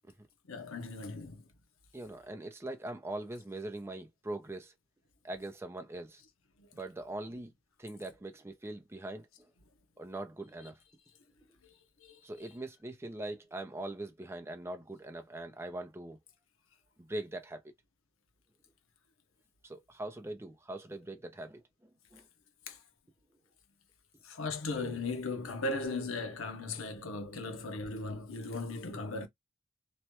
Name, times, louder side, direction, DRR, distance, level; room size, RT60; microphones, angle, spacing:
voice 1, 0.5-1.4 12.0-12.2 22.7-22.8 24.2-29.3, left 3 dB, 85° left, 0.8 m, -37 dB
voice 2, 1.9-4.7 5.2-6.2 6.7-7.5 7.8-9.3 10.0-10.8 12.2-16.2 17.1-17.6 19.6-21.6 22.1-22.2 26.7-27.0, right 1 dB, 10° right, 0.5 m, -41 dB
3.1 x 2.2 x 2.9 m
head